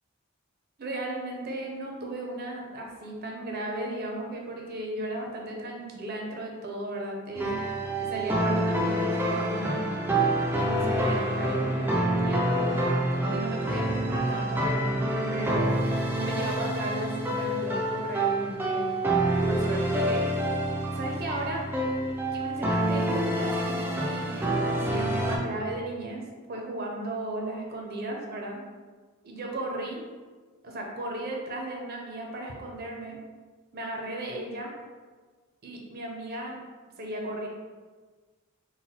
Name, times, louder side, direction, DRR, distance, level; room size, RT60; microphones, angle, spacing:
voice 1, 0.8-7.6 8.0-10.0 10.5-18.9 19.4-20.5 20.9-21.7 22.3-26.2 26.5-28.6 29.2-30.0 30.6-33.2 33.7-34.7 35.6-36.6 37.0-37.5, right 1 dB, 45° right, 0 dB, 0.6 m, -35 dB
sound 1, 7.4-25.4, right 1 dB, 10° right, 0.4 m, -27 dB
4.0 x 2.2 x 4.2 m, 1.4 s
head